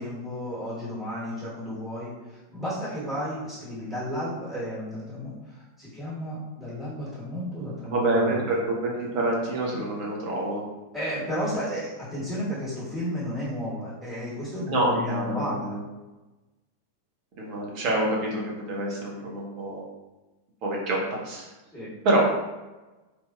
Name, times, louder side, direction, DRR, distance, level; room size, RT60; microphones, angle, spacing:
voice 1, 0.0-2.1 2.5-8.6 10.9-15.8 21.7-21.9, equal, 10° right, -11 dB, 1.3 m, -33 dB
voice 2, 7.9-10.6 14.7-15.8 17.4-19.9 20.6-21.5 22.0-22.2, right 1 dB, 40° right, -2 dB, 0.8 m, -26 dB
2.7 x 2.7 x 2.3 m, 1.1 s
figure-of-eight pair, 90°, 0 cm